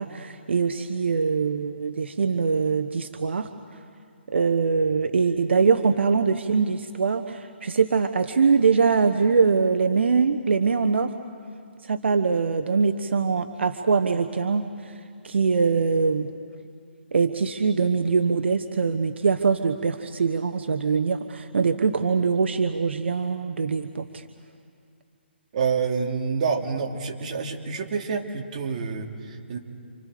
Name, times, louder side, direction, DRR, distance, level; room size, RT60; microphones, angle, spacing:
voice 1, 0.0-3.5 4.3-11.1 11.9-14.6 15.2-16.3 17.1-24.2, right 5 dB, 75° right, 8 dB, 1.1 m, -23 dB
voice 2, 25.5-29.6, right 5 dB, 40° right, 1 dB, 2.8 m, -28 dB
29.0 x 28.5 x 5.1 m, 2.3 s
hypercardioid pair, 160°, 6 cm